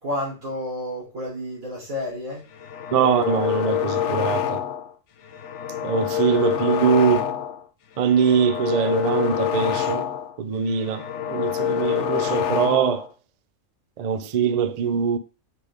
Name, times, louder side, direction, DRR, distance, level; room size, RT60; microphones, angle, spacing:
voice 1, 0.0-2.4, left 1 dB, 80° right, 4.0 m, -31 dB
sound 1, 2.5-4.9 5.3-7.6 8.0-10.4 10.7-13.1, left 9 dB, 65° left, 0.9 m, -26 dB
voice 2, 2.9-4.6 5.8-7.3 8.0-10.1 10.4-13.1 14.0-15.2, right 7 dB, 60° right, 0.4 m, -22 dB
6.7 x 5.1 x 3.6 m
omnidirectional pair, 1.4 m